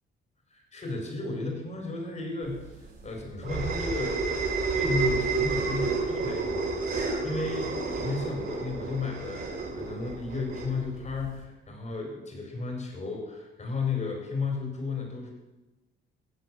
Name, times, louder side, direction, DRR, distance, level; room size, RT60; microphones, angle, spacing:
voice 1, 0.5-15.3, left 3 dB, 40° left, 1 dB, 5.0 m, -34 dB
sound 1, 2.6-11.4, right 4 dB, 55° right, 4.4 m, -30 dB
14.5 x 8.1 x 7.9 m, 1.1 s
cardioid pair, 90°, 20 cm